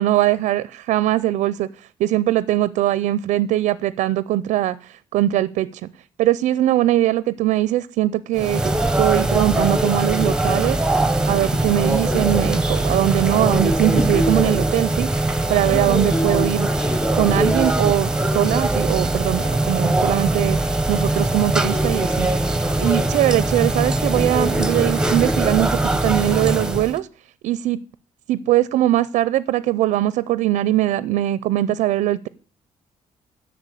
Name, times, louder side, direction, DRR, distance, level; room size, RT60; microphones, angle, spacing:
voice 1, 0.0-5.7 6.2-10.8 11.3-15.1 15.5-16.7 17.1-20.6 20.9-22.3 22.8-27.1 27.4-27.8 28.3-32.3, right 14 dB, 90° right, 18 dB, 0.5 m, -21 dB
sound 1, 8.3-27.0, right 1 dB, 5° right, 0.7 m, -21 dB
11.0 x 6.8 x 8.2 m, 0.41 s
cardioid pair, 140°, 12 cm